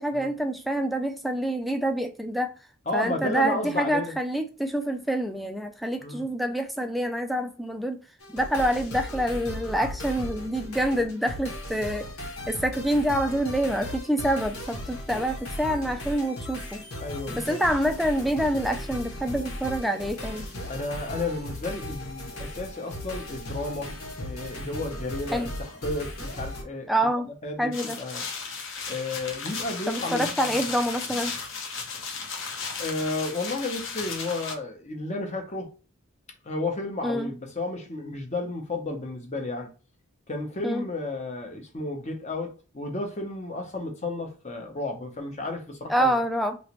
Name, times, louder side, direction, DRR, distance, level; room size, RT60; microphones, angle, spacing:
voice 1, 0.0-2.5 2.9-8.0 8.3-12.1 12.5-16.9 17.4-20.5 25.3-25.5 26.9-27.3 27.6-28.0 29.9-31.3 37.0-37.3 40.6-40.8 45.9-46.6, right 1 dB, ahead, 0.3 m, -27 dB
voice 2, 2.9-4.1 6.0-6.3 17.0-17.6 20.7-23.9 24.2-26.9 27.4-28.3 28.9-30.4 32.8-35.7 36.4-39.7 40.3-46.2, left 2 dB, 30° left, 0.8 m, -32 dB
sound 1, 8.2-26.6, left 1 dB, 90° left, 1.4 m, -37 dB
sound 2, 27.7-34.5, left 5 dB, 65° left, 0.9 m, -35 dB
3.1 x 2.9 x 2.9 m
head